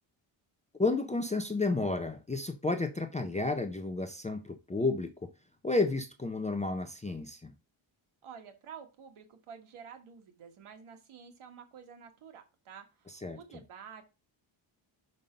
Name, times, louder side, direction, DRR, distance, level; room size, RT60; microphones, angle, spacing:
voice 1, 0.8-5.3 5.6-7.5 13.2-13.4, left 3 dB, 15° left, 7 dB, 0.4 m, -31 dB
voice 2, 8.2-14.0, right 7 dB, 75° right, 5 dB, 1.7 m, -50 dB
5.6 x 5.3 x 5.0 m, 0.28 s
wide cardioid pair, 175°, 50 cm